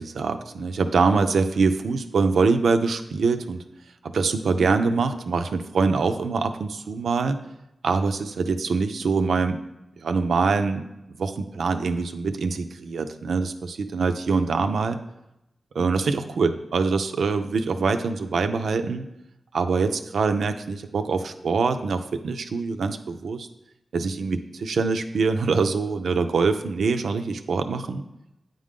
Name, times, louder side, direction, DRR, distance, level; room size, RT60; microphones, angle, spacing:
voice 1, 0.0-3.6 4.0-7.4 7.8-9.6 10.0-10.9 11.2-15.0 15.7-19.1 19.5-23.5 23.9-28.0, right 4 dB, 85° right, 8 dB, 0.4 m, -24 dB
9.1 x 3.8 x 3.6 m, 0.87 s
cardioid pair, 55°, 0 cm